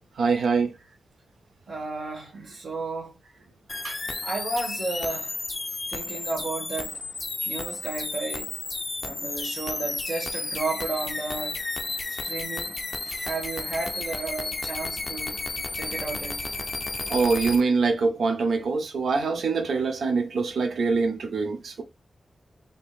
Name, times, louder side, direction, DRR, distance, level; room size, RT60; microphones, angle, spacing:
voice 1, 0.2-0.7 3.8-4.0 7.4-7.5 17.1-21.8, right 4 dB, 90° right, 0.6 m, -24 dB
voice 2, 1.7-3.2 4.2-5.3 5.9-7.0 7.4-8.5 9.0-11.7 12.1-12.9 13.2-15.4 15.7-16.7, right 3 dB, 55° right, 1.3 m, -33 dB
sound 1, 3.7-17.6, left 3 dB, 30° left, 0.4 m, -32 dB
3.7 x 3.4 x 2.3 m
wide cardioid pair, 170°, 0 cm